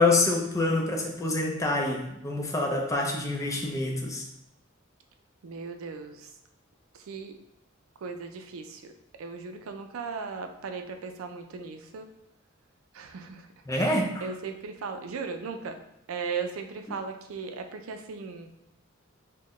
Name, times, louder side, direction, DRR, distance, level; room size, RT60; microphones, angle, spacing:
voice 1, 0.0-4.2 13.7-14.3, left 2 dB, 15° left, 0 dB, 0.5 m, -26 dB
voice 2, 5.4-6.3 6.9-7.4 8.0-8.8 9.2-12.1 12.9-15.8 16.1-18.5, right 5 dB, 85° right, 6 dB, 0.4 m, -37 dB
4.3 x 2.1 x 3.0 m, 0.83 s
head